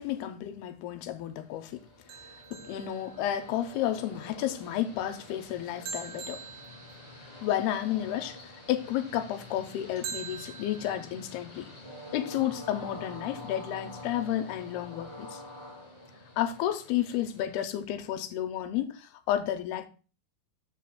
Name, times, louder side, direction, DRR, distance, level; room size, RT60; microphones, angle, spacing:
voice 1, 0.0-1.8 2.1-6.4 7.4-11.7 12.1-15.4 16.4-19.9, left 12 dB, 85° left, 2.6 m, -32 dB
Train, 1.5-18.2, left 1 dB, 15° left, 1.6 m, -47 dB
sound 1, 2.1-3.6 5.9-7.5 10.0-11.1, right 6 dB, 85° right, 2.7 m, -43 dB
7.9 x 7.4 x 2.3 m
omnidirectional pair, 4.4 m